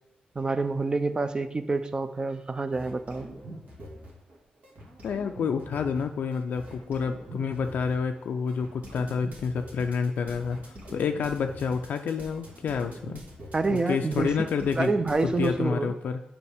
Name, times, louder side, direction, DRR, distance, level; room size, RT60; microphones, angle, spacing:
voice 1, 0.4-3.3 13.5-15.9, right 3 dB, 30° right, 11 dB, 0.5 m, -28 dB
sound 1, 2.7-4.4 4.6-15.5, right 1 dB, 70° right, 1.8 m, -44 dB
voice 2, 5.0-13.2 13.7-14.9 15.2-16.2, left 6 dB, 75° left, 5 dB, 0.3 m, -29 dB
6.9 x 5.4 x 3.4 m, 0.86 s
cardioid pair, 80°, 3 cm